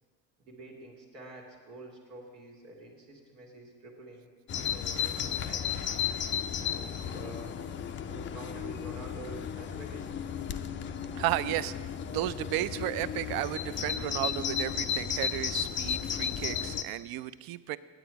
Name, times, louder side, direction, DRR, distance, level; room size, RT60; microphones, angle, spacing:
voice 1, 0.4-4.3 4.6-5.7 6.5-7.6 8.1-10.7, right 2 dB, 90° right, -2 dB, 1.7 m, -47 dB
Bird vocalization bird call bird song, 4.5-16.8, left 8 dB, 25° left, 0.4 m, -34 dB
voice 2, 11.2-17.8, right 15 dB, 50° right, 16 dB, 0.5 m, -33 dB
8.9 x 7.9 x 4.7 m, 1.5 s
hypercardioid pair, 75°, 48 cm